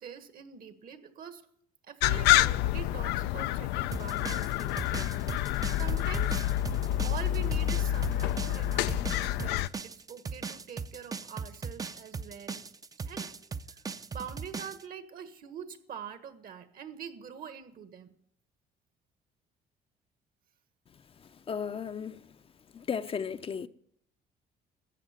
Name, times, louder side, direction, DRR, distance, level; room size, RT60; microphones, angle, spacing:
voice 1, 0.0-1.5 1.8-6.4 7.0-12.6 13.0-13.3 13.7-13.8 14.1-18.1, right 7 dB, 60° right, 1.6 m, -44 dB
sound 1, 2.0-9.7, left 14 dB, 90° left, 0.5 m, -28 dB
sound 2, 3.9-14.8, right 5 dB, 20° right, 0.5 m, -38 dB
voice 2, 21.5-22.2 22.7-23.7, left 7 dB, 35° left, 0.6 m, -34 dB
13.5 x 8.4 x 9.7 m
cardioid pair, 110°, 17 cm